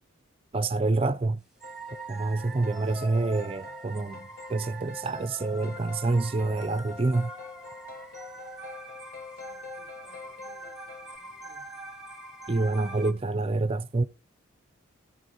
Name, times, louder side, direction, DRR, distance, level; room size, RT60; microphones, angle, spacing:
voice 1, 0.5-1.4 2.1-7.3 12.5-14.0, right 3 dB, 25° right, 0.4 m, -27 dB
sound 1, 1.6-11.2, left 6 dB, 45° left, 0.9 m, -46 dB
sound 2, 1.6-13.1, right 2 dB, 5° right, 1.1 m, -43 dB
voice 2, 2.9-3.8 9.3-11.6, left 3 dB, 65° left, 2.2 m, -60 dB
15.5 x 6.3 x 2.9 m
head